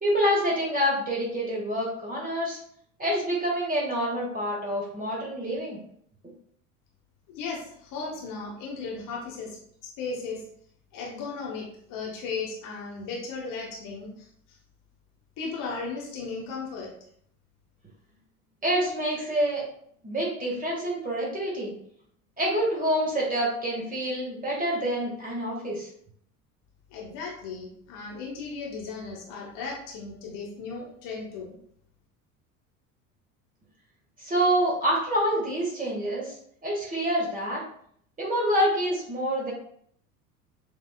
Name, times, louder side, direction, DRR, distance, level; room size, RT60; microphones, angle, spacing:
voice 1, 0.0-2.6 3.0-5.8 18.6-19.6 20.0-21.7 22.4-25.9 34.2-36.4 36.6-37.6 38.2-39.5, equal, 20° right, -3 dB, 1.7 m, -27 dB
voice 2, 7.3-9.6 9.8-10.4 10.9-14.3 15.4-16.9 26.9-31.6, left 4 dB, 45° left, -2 dB, 1.4 m, -36 dB
6.7 x 2.8 x 2.3 m, 0.65 s
figure-of-eight pair, 70°, 45 cm